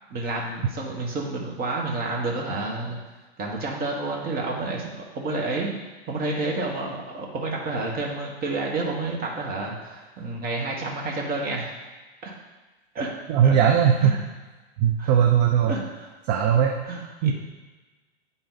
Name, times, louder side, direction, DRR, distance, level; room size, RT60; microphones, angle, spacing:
voice 1, 0.1-3.0 3.4-11.8 12.2-12.3 12.9-13.1 13.4-13.6 14.0-14.2 15.0-15.1 15.7-16.1 16.9-17.3, right 2 dB, 30° right, -1 dB, 1.5 m, -30 dB
voice 2, 13.3-14.2 14.8-15.7 16.3-16.8 17.2-17.3, right 8 dB, 45° right, 2 dB, 0.7 m, -19 dB
8.7 x 4.0 x 4.0 m, 1.2 s
hypercardioid pair, 125°, 33 cm